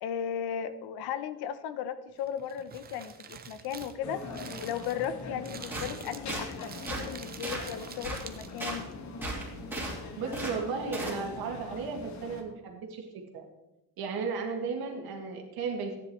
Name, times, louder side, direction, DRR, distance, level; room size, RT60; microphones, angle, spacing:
voice 1, 0.0-4.2 4.6-8.9, left 8 dB, 65° left, 12 dB, 0.8 m, -36 dB
Crumpling crinkling, 2.2-8.9, right 6 dB, 25° right, 0.6 m, -47 dB
sound 1, 4.0-12.4, left 3 dB, 45° left, 1.2 m, -43 dB
sound 2, 5.7-5.9 6.3-6.4 6.9-7.1 7.4-7.7 8.0-8.2 8.6-8.8 9.2-9.9 10.3-10.5 10.9-11.2, right 2 dB, 5° right, 2.7 m, -35 dB
voice 2, 10.2-13.5 14.0-16.0, right 5 dB, 65° right, 2 dB, 2.0 m, -35 dB
14.0 x 10.0 x 3.1 m, 0.96 s
cardioid pair, 165°, 41 cm